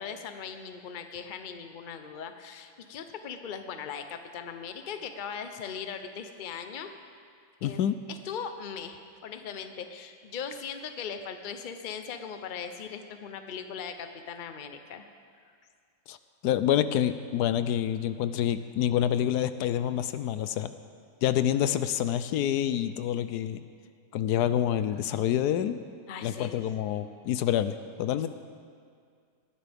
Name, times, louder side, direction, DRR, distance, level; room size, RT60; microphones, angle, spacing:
voice 1, 0.0-6.9 7.6-7.8 8.1-15.0 26.1-26.6, left 7 dB, 40° left, 7 dB, 0.7 m, -39 dB
voice 2, 7.6-8.0 16.1-16.2 16.4-20.7 21.2-23.6 24.1-25.8 26.2-28.3, left 10 dB, 80° left, 12 dB, 1.1 m, -27 dB
20.0 x 14.0 x 3.5 m, 2.2 s
omnidirectional pair, 1.7 m